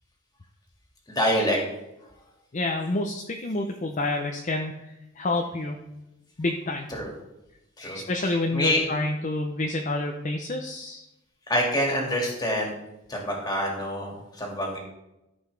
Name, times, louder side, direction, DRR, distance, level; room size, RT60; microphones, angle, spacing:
voice 1, 1.1-1.6 6.9-7.1 7.8-8.8 11.5-12.7 13.1-14.8, equal, 20° left, -1 dB, 2.1 m, -26 dB
voice 2, 2.5-5.8 6.4-6.9 7.9-11.0, left 2 dB, 40° left, 3 dB, 0.6 m, -28 dB
14.0 x 5.3 x 3.3 m, 0.93 s
head